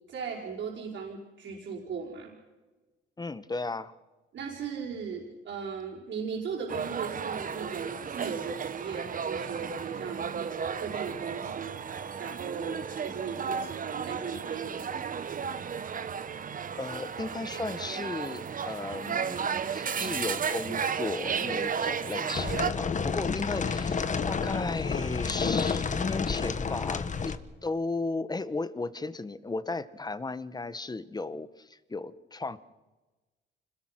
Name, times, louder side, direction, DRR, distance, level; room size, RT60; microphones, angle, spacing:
voice 1, 0.1-2.3 4.3-11.8 12.2-15.5, right 6 dB, 70° right, -3 dB, 5.1 m, -38 dB
voice 2, 3.2-3.9 16.8-27.4 27.6-32.6, left 3 dB, 20° left, 14 dB, 1.2 m, -35 dB
sound 1, 6.7-22.7, right 6 dB, 45° right, 1.3 m, -34 dB
sound 2, 22.3-27.4, left 5 dB, 40° left, 1.4 m, -30 dB
26.0 x 20.5 x 6.0 m, 1.2 s
cardioid pair, 90°, 20 cm